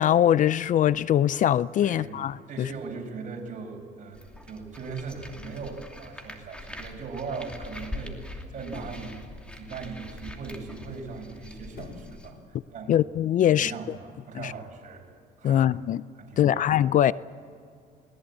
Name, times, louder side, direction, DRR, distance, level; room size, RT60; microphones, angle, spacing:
voice 1, 0.0-2.7 12.9-14.0 14.3-14.5 15.4-16.0 16.4-17.1, left 11 dB, 50° left, 0.5 m, -22 dB
voice 2, 1.8-2.2 2.5-9.1 9.5-12.4 12.7-13.0 13.4-15.0 15.4-15.6 16.2-16.7, right 4 dB, 50° right, 5.7 m, -39 dB
sound 1, 4.1-12.3, left 1 dB, 5° left, 2.8 m, -42 dB
sound 2, 8.7-9.1 11.7-12.2 12.6-12.7, left 4 dB, 75° left, 5.0 m, -45 dB
21.0 x 19.5 x 8.6 m
cardioid pair, 110°, 17 cm